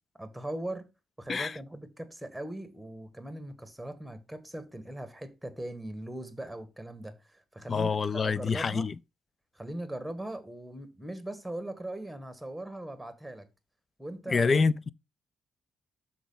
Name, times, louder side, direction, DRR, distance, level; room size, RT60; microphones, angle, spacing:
voice 1, 0.2-0.9 1.2-8.9 9.5-13.5 14.0-14.5, right 1 dB, 5° right, 1.6 m, -40 dB
voice 2, 7.7-9.0 14.3-14.9, left 5 dB, 40° left, 0.4 m, -26 dB
6.2 x 4.6 x 5.6 m
cardioid pair, 90°, 0 cm